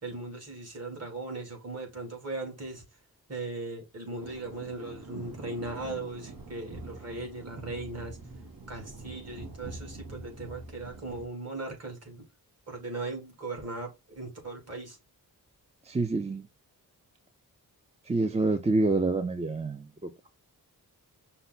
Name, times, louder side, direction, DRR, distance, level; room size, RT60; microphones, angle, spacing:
voice 1, 0.0-2.8 3.3-8.2 8.7-12.3 12.7-15.0, right 2 dB, 40° right, 2.0 m, -38 dB
sound 1, 4.2-11.3, right 2 dB, 65° right, 1.2 m, -44 dB
voice 2, 15.8-16.5 18.0-20.1, right 3 dB, 20° right, 0.4 m, -27 dB
5.5 x 2.2 x 3.9 m
wide cardioid pair, 120°, 38 cm